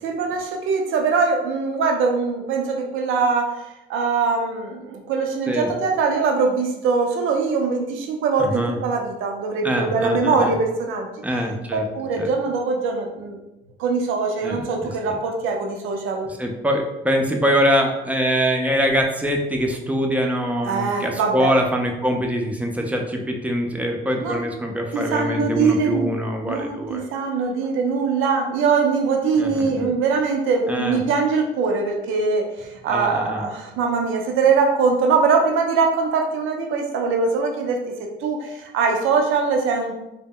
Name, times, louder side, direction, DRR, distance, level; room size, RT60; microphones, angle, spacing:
voice 1, 0.0-11.1 11.7-13.4 13.8-16.3 20.6-21.5 24.2-24.4 24.9-26.1 26.4-39.9, right 4 dB, 85° right, 2 dB, 0.4 m, -22 dB
voice 2, 8.4-8.8 9.6-10.6 11.2-11.9 12.2-12.3 14.4-15.2 16.3-27.0 29.4-29.9 30.7-31.0 32.9-33.5, equal, 5° right, 2 dB, 0.4 m, -24 dB
2.0 x 2.0 x 3.5 m, 0.93 s
cardioid pair, 90°, 20 cm